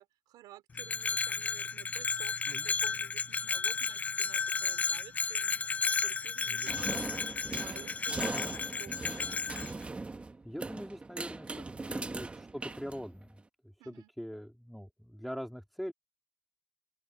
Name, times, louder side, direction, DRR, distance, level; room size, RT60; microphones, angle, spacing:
voice 1, 0.0-5.7 6.0-9.1 11.6-12.1 13.8-14.1, right 15 dB, 80° right, 4.2 m, -54 dB
Bell, 0.7-9.7, left 5 dB, 20° left, 0.3 m, -33 dB
voice 2, 6.5-7.1 8.3-8.6 10.1-15.9, equal, ahead, 3.4 m, -43 dB
sound 1, 6.7-13.4, right 3 dB, 15° right, 1.3 m, -40 dB
cardioid pair, 125°, 7 cm